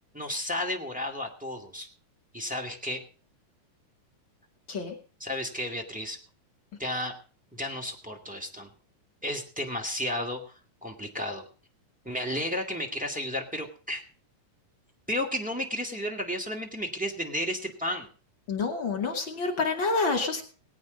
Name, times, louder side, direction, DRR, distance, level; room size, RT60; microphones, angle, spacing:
voice 1, 0.1-1.9 2.3-3.0 5.2-6.2 6.8-7.1 7.5-8.7 9.2-10.5 10.8-11.4 12.0-14.0 15.1-18.1, left 1 dB, 5° right, 1 dB, 1.7 m, -32 dB
voice 2, 18.5-20.4, left 4 dB, 40° left, 1 dB, 2.9 m, -28 dB
20.0 x 8.9 x 5.2 m, 0.38 s
omnidirectional pair, 3.9 m